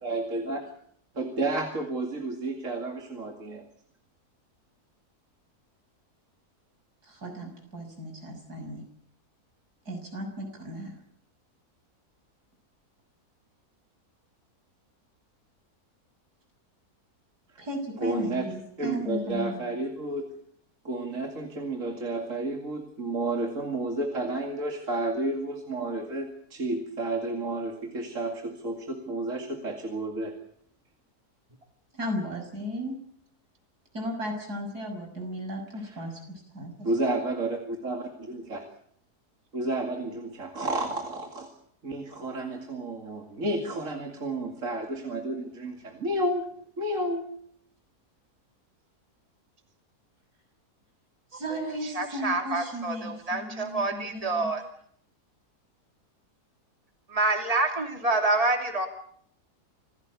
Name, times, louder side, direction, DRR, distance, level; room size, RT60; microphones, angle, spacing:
voice 1, 0.0-0.6 1.1-3.6 18.0-18.4 18.8-20.3 20.8-30.3 35.7-36.0 36.8-38.6 39.5-41.5 41.8-46.5 46.8-47.3, right 2 dB, 55° right, 3 dB, 2.8 m, -31 dB
voice 2, 7.1-8.8 9.9-10.9 17.6-19.6 31.9-33.0 33.9-36.9 51.3-54.5, equal, 80° right, 4 dB, 7.1 m, -35 dB
voice 3, 51.8-54.6 57.1-58.9, right 2 dB, 20° right, 4 dB, 2.8 m, -27 dB
27.0 x 16.5 x 8.4 m, 0.66 s
omnidirectional pair, 1.7 m